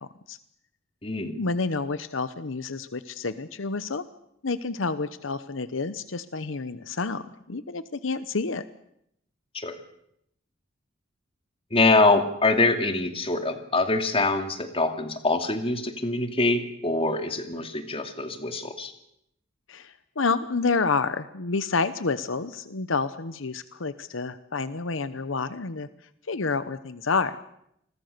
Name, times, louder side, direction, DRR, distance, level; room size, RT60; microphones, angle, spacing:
voice 1, 0.0-0.4 1.2-4.1 4.4-8.6 19.7-25.9 26.3-27.4, left 4 dB, 80° left, 13 dB, 0.9 m, -29 dB
voice 2, 1.0-1.4 9.5-9.7 11.7-18.9, left 3 dB, 30° left, 6 dB, 2.5 m, -24 dB
28.5 x 21.0 x 6.8 m, 0.76 s
head